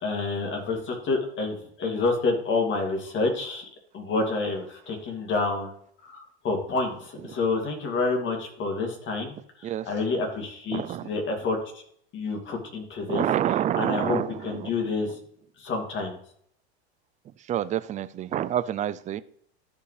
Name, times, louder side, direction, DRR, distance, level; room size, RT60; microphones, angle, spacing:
voice 1, 0.0-3.6 3.9-5.7 6.0-11.8 12.1-13.2 13.7-15.2 15.6-16.2, left 3 dB, 35° left, 2 dB, 2.5 m, -28 dB
voice 2, 10.7-11.1 13.1-14.7 17.5-19.2, right 11 dB, 25° right, 15 dB, 0.4 m, -27 dB
13.5 x 5.3 x 3.3 m, 0.65 s
supercardioid pair, 120°, 32 cm